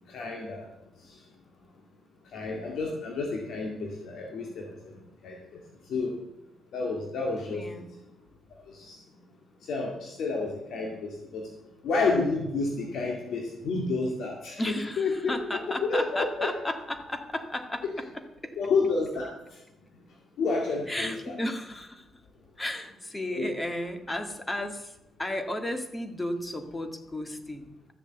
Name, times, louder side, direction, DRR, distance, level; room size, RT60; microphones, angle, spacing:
voice 1, 0.1-0.7 1.1-1.2 2.3-5.6 5.9-6.1 6.7-7.9 8.7-9.0 9.6-11.5 11.8-14.6 15.0-15.6 15.9-16.5 18.6-19.3 20.4-21.3 23.3-23.5, left 3 dB, 70° left, -1 dB, 2.2 m, -30 dB
voice 2, 7.5-7.9 14.6-18.6 20.9-22.1 22.6-27.9, left 1 dB, 15° left, 7 dB, 1.9 m, -34 dB
13.5 x 7.4 x 8.0 m, 0.94 s
cardioid pair, 90°, 0 cm